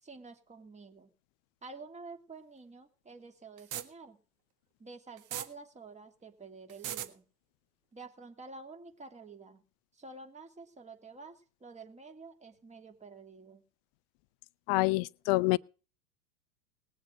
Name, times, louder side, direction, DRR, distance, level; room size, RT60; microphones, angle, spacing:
voice 1, 0.0-1.1 1.6-4.2 4.8-7.2 7.9-9.6 9.9-13.6, right 3 dB, 15° right, 2.9 m, -49 dB
sound 1, 3.6-3.8 5.2-5.5 6.7-7.1, right 12 dB, 40° right, 1.7 m, -37 dB
voice 2, 14.7-15.6, left 22 dB, 40° left, 0.6 m, -27 dB
19.5 x 7.4 x 6.6 m
hypercardioid pair, 95°, 45 cm